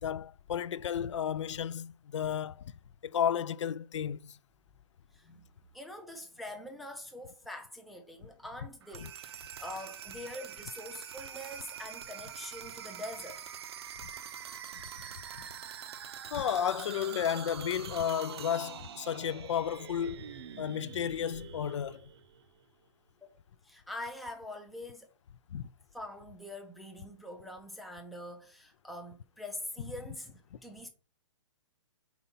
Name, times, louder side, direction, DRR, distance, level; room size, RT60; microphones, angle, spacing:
voice 1, 0.0-2.7 3.0-4.4 9.0-9.1 16.3-20.2 20.6-22.1 25.5-25.7, left 9 dB, 75° left, 0.4 m, -33 dB
voice 2, 5.1-5.5 5.7-13.4 23.6-25.1 25.9-30.9, left 1 dB, ahead, 0.4 m, -44 dB
sound 1, 8.8-22.6, right 8 dB, 55° right, 0.6 m, -45 dB
4.4 x 4.1 x 5.5 m
hypercardioid pair, 165°, 15 cm